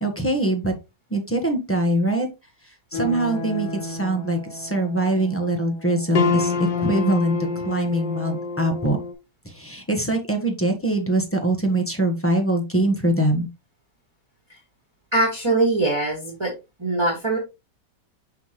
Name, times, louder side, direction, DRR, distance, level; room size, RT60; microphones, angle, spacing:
voice 1, 0.0-0.7 1.1-2.3 2.9-6.5 6.8-7.3 7.6-9.0 9.5-13.5, right 1 dB, 10° left, 4 dB, 1.1 m, -23 dB
sound 1, 2.9-9.1, left 4 dB, 85° left, 2.0 m, -28 dB
voice 2, 15.1-16.5 16.8-17.4, right 2 dB, 15° right, -1 dB, 1.9 m, -22 dB
5.9 x 5.7 x 3.1 m, 0.25 s
omnidirectional pair, 1.9 m